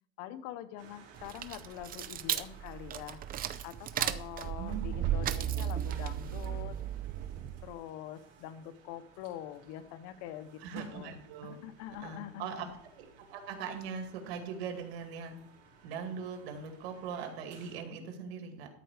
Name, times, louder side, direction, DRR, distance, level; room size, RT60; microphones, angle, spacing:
voice 1, 0.2-3.2 3.6-6.8 7.6-11.1 11.4-12.7, left 12 dB, 65° left, 12 dB, 1.0 m, -44 dB
sound 1, 0.8-17.8, right 5 dB, 50° right, 4.0 m, -58 dB
sound 2, 1.2-7.7, right 10 dB, 30° right, 0.6 m, -35 dB
voice 2, 4.6-5.0 10.6-11.6 12.0-12.7 13.0-15.4 15.8-18.7, right 6 dB, 85° right, 5 dB, 2.3 m, -40 dB
13.0 x 4.6 x 6.5 m, 0.66 s
supercardioid pair, 140°, 31 cm